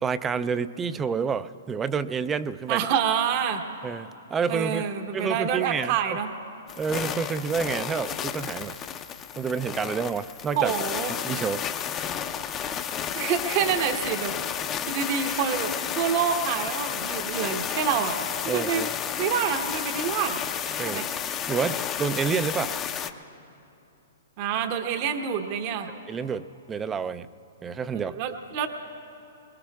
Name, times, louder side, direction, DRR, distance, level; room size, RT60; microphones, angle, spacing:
voice 1, 0.0-2.9 3.8-4.8 5.1-6.0 6.8-8.8 9.4-10.7 11.2-11.7 18.5-18.9 20.8-21.0 21.5-22.8 26.1-27.3 27.6-28.2, right 6 dB, 15° right, 13 dB, 0.4 m, -28 dB
voice 2, 2.7-3.6 4.5-6.3 10.5-11.1 13.1-14.3 14.9-18.2 18.5-18.9 19.2-20.4 20.9-21.1 24.4-25.9 27.9-28.7, right 7 dB, 45° right, 6 dB, 0.9 m, -27 dB
sound 1, 6.7-23.1, left 8 dB, 25° left, 0.6 m, -32 dB
24.0 x 21.0 x 2.3 m, 2.9 s
hypercardioid pair, 125°, 0 cm